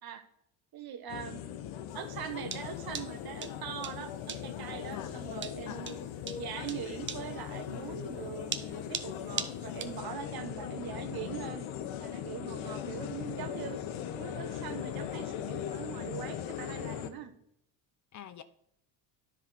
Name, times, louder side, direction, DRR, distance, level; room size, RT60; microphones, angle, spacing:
voice 1, 0.7-1.4 1.9-6.0 6.4-11.6 12.0-13.8 14.2-17.3, right 8 dB, 45° right, 10 dB, 1.0 m, -42 dB
sound 1, 1.1-17.1, left 9 dB, 70° left, 0.9 m, -39 dB
sound 2, 1.9-10.0, right 7 dB, 25° right, 0.5 m, -40 dB
voice 2, 5.7-6.0 12.7-13.1 16.3-16.5 18.1-18.4, left 10 dB, 40° left, 11 dB, 0.5 m, -47 dB
10.0 x 5.1 x 4.0 m, 0.75 s
supercardioid pair, 95°, 49 cm